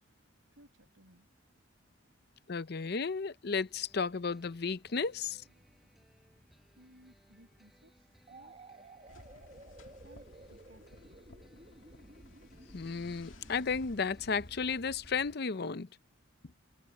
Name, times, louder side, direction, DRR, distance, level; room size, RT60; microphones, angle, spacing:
voice 1, 0.0-2.9 5.2-8.8 10.0-11.2, right 1 dB, 75° right, 7.8 m, -64 dB
voice 2, 2.5-5.4 12.7-15.9, left 5 dB, 50° left, 0.6 m, -33 dB
sound 1, 3.5-14.6, equal, ahead, 5.8 m, -66 dB
sound 2, 8.3-15.9, right 2 dB, 30° right, 1.5 m, -56 dB
sound 3, 9.1-15.3, left 1 dB, 75° left, 2.1 m, -55 dB
head